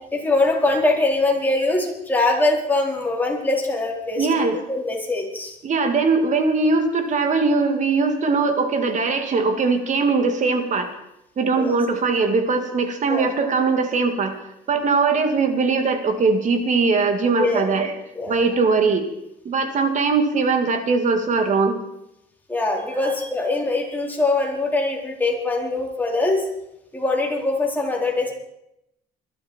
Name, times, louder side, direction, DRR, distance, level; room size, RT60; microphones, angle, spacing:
voice 1, 0.1-4.3 4.7-5.5 11.5-11.7 13.1-13.3 17.4-17.7 18.1-18.4 22.5-26.4 26.9-28.3, left 2 dB, 10° left, -1 dB, 4.4 m, -22 dB
voice 2, 4.2-4.6 5.6-10.9 11.4-14.4 14.7-17.9 18.3-19.1 19.4-21.8 23.0-23.1, right 4 dB, 45° right, 6 dB, 2.4 m, -20 dB
22.0 x 12.5 x 4.5 m, 0.82 s
cardioid pair, 110°, 17 cm